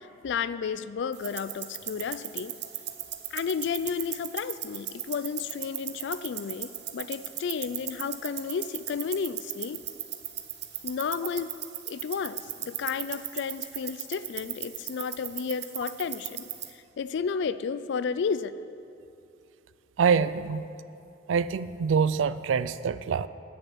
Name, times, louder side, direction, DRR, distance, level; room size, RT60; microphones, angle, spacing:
voice 1, 0.2-2.5 3.3-9.8 10.8-11.5 11.9-16.5 17.0-18.5, left 6 dB, 65° left, 14 dB, 0.3 m, -32 dB
sound 1, 1.1-16.7, right 12 dB, 60° right, 0.8 m, -38 dB
voice 2, 20.0-20.7 21.3-23.3, right 6 dB, 80° right, 15 dB, 0.4 m, -25 dB
10.0 x 6.7 x 8.3 m, 2.7 s
head